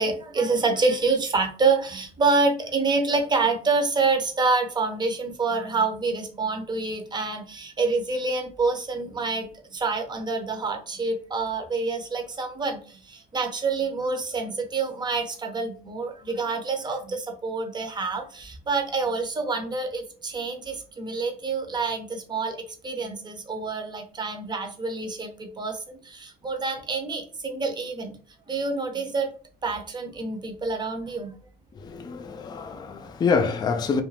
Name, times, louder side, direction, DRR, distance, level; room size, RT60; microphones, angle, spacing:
voice 1, 0.0-22.6 22.8-28.2 28.5-29.3 29.6-31.3, right 3 dB, 25° right, 0.6 m, -27 dB
voice 2, 31.7-34.0, left 5 dB, 25° left, 0.3 m, -26 dB
2.4 x 2.2 x 3.1 m
cardioid pair, 110°, 17 cm